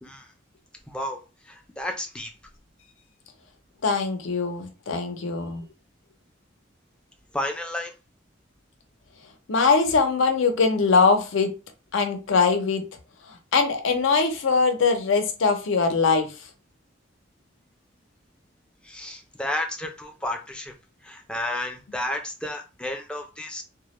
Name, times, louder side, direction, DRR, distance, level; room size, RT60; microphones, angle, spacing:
voice 1, 0.9-1.2 1.4-2.3 7.3-7.9 18.8-20.7 21.0-23.6, left 1 dB, 5° left, 3 dB, 0.3 m, -32 dB
voice 2, 3.8-5.6 9.5-11.5 11.9-12.8 13.5-16.3, left 4 dB, 85° left, 6 dB, 0.5 m, -22 dB
2.2 x 2.0 x 2.9 m, 0.30 s
head